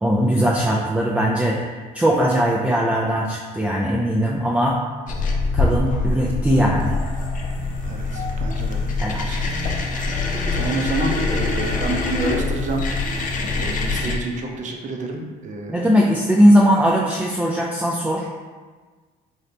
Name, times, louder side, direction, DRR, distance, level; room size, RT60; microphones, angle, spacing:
voice 1, 0.0-4.8 5.5-6.9 9.0-9.3 15.7-18.3, equal, 5° right, -4 dB, 0.4 m, -19 dB
sound 1, 5.1-14.2, left 3 dB, 50° left, 0.6 m, -24 dB
voice 2, 7.8-8.8 9.2-9.4 9.9-10.0 10.5-12.8 13.6-15.9, right 3 dB, 45° right, 1 dB, 0.6 m, -28 dB
3.9 x 2.7 x 3.3 m, 1.4 s
cardioid pair, 110°, 17 cm